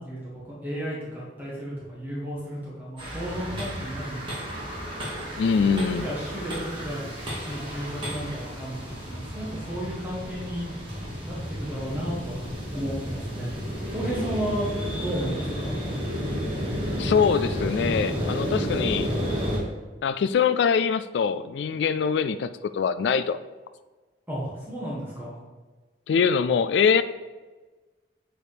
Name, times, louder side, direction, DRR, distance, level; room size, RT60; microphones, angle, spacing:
voice 1, 0.1-4.5 5.5-7.1 7.5-10.7 11.2-12.4 12.7-13.5 13.9-14.7 15.0-15.8 24.3-25.4, equal, 10° right, -7 dB, 1.6 m, -33 dB
sound 1, 3.0-19.6, equal, 30° right, 2.5 m, -32 dB
voice 2, 5.4-6.1 17.0-19.1 20.0-23.4 26.1-27.0, left 6 dB, 70° left, 11 dB, 0.3 m, -23 dB
8.2 x 4.6 x 5.1 m, 1.3 s
head